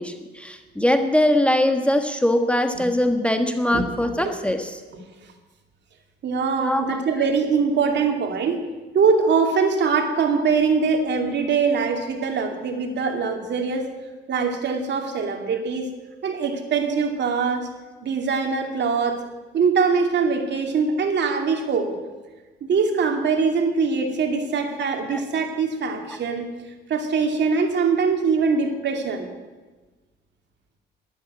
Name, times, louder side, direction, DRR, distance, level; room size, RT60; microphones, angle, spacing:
voice 1, 0.0-4.7 6.6-7.0 25.1-25.2, left 1 dB, 5° left, 7 dB, 1.4 m, -22 dB
voice 2, 6.2-8.6 8.9-13.9 14.3-15.9 16.2-17.7 18.0-19.2 19.5-21.9 22.6-26.5 26.9-29.3, right 5 dB, 60° right, 4 dB, 2.6 m, -22 dB
12.0 x 11.5 x 9.6 m, 1.3 s
cardioid pair, 90°, 20 cm